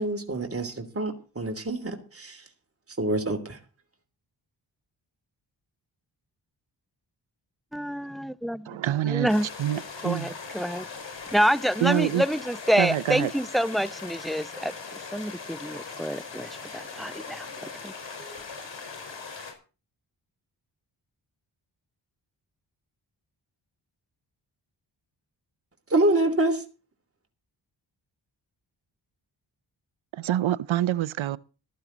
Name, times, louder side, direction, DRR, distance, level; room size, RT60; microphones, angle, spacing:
voice 1, 0.0-2.5 3.0-3.6 25.9-26.6, right 2 dB, 30° right, 3.1 m, -26 dB
voice 2, 7.7-8.8 9.1-9.5 10.0-10.9 11.3-17.9 18.2-18.4, equal, ahead, 0.6 m, -27 dB
voice 3, 8.7-9.3 9.6-10.3 11.8-12.2 12.8-13.3 30.2-31.4, right 12 dB, 90° right, 0.7 m, -26 dB
sound 1, 9.3-19.5, left 4 dB, 70° left, 4.6 m, -40 dB
14.5 x 13.5 x 4.0 m
cardioid pair, 60°, 46 cm